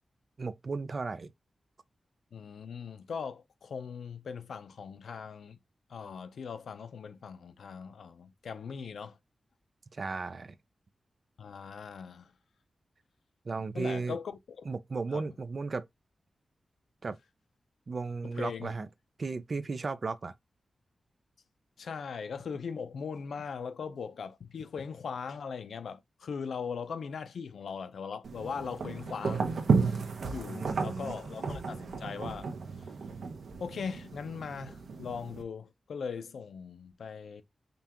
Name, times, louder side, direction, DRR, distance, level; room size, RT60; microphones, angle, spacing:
voice 1, 0.4-1.3 9.9-10.6 13.4-14.2 14.7-15.9 17.0-17.2 17.9-18.9 19.2-20.3 30.5-31.2, right 4 dB, 40° right, 0.5 m, -35 dB
voice 2, 2.3-5.6 5.9-9.2 11.4-12.3 13.7-14.7 15.1-15.2 18.2-18.7 21.8-32.5 33.6-37.4, left 6 dB, 90° left, 0.6 m, -40 dB
sound 1, 28.2-35.4, right 4 dB, 80° right, 0.8 m, -33 dB
5.2 x 2.4 x 2.9 m
wide cardioid pair, 155°, 0 cm